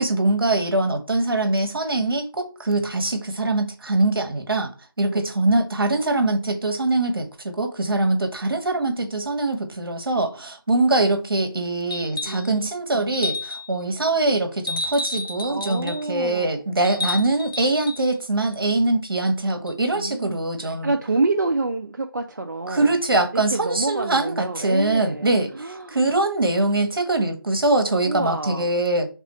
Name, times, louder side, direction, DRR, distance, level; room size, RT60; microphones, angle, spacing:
voice 1, 0.0-4.7 5.0-20.9 22.7-29.1, right 2 dB, 75° right, 1.0 m, -23 dB
sound 1, 11.9-12.5 13.1-13.7 14.7-16.1 16.8-18.0 19.7-19.8, left 2 dB, 65° left, 0.9 m, -31 dB
voice 2, 12.2-12.7 12.9-13.1 15.5-16.6 19.9-23.0 23.3-26.0 28.1-28.7, right 3 dB, 50° right, 0.4 m, -28 dB
3.4 x 2.4 x 4.0 m
figure-of-eight pair, 170°, 12 cm